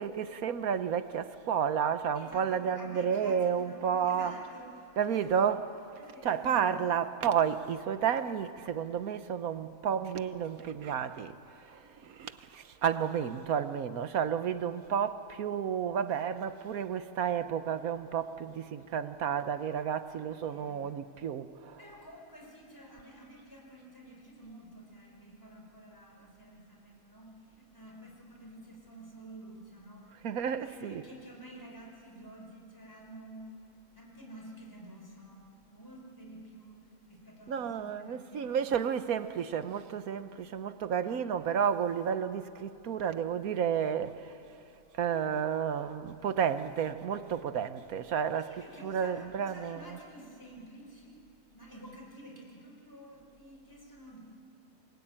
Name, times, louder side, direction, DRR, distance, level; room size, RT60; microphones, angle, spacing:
voice 1, 0.0-4.3 5.0-5.6 6.2-11.3 11.7-21.8 30.2-31.0 37.5-44.3 45.0-48.5 48.8-50.0, right 8 dB, 90° right, 1.4 m, -31 dB
voice 2, 2.1-5.4 6.0-6.8 20.3-20.9 21.8-30.1 30.6-33.5 33.9-38.7 48.3-51.2 51.5-54.2, right 1 dB, 15° left, 5.0 m, -50 dB
28.0 x 21.5 x 8.8 m
omnidirectional pair, 1.5 m